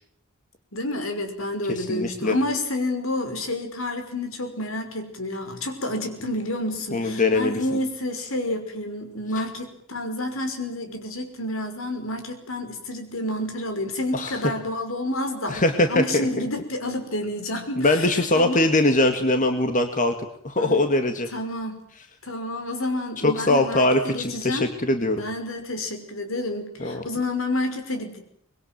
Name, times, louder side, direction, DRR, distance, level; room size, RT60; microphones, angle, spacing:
voice 1, 0.7-15.6 15.9-18.7 20.6-20.8 21.3-21.8 22.2-24.7 25.2-28.2, left 1 dB, 75° left, 7 dB, 5.6 m, -29 dB
voice 2, 1.8-2.3 6.9-7.6 14.1-14.4 15.5-16.3 17.8-20.1 20.4-21.3 23.2-25.2 26.8-27.0, left 2 dB, 40° left, 6 dB, 2.1 m, -22 dB
25.0 x 22.0 x 9.3 m, 0.68 s
head